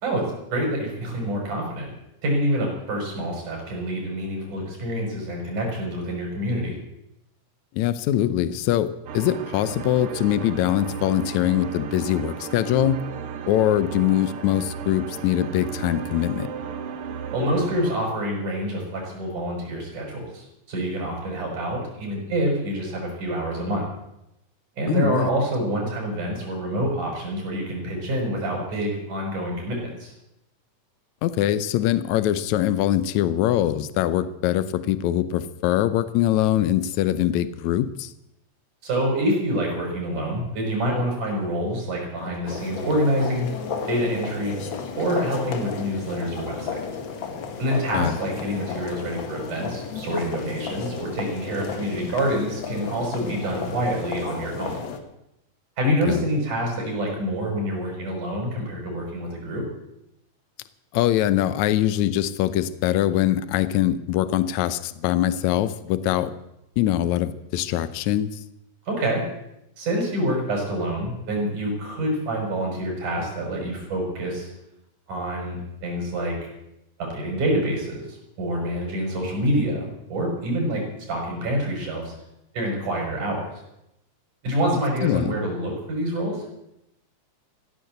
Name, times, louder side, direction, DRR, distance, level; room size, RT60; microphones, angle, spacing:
voice 1, 0.0-1.9 2.2-6.8 17.3-23.8 24.8-30.1 38.8-43.5 43.9-44.6 45.0-46.8 47.6-54.8 55.8-59.6 68.9-69.2 69.8-74.5 75.1-76.4 77.0-82.1 82.5-83.5 84.4-86.4, right 1 dB, 80° right, 0 dB, 7.3 m, -27 dB
voice 2, 7.7-13.0 13.5-16.5 24.9-25.3 31.2-38.1 47.9-48.2 55.8-56.3 60.9-66.3 66.8-68.4 85.0-85.4, left 12 dB, 75° left, 14 dB, 2.1 m, -23 dB
sound 1, 9.1-18.0, right 7 dB, 60° right, 1.6 m, -34 dB
sound 2, 42.5-55.0, left 5 dB, 50° left, 1.8 m, -33 dB
16.0 x 11.0 x 8.0 m, 0.85 s
omnidirectional pair, 3.5 m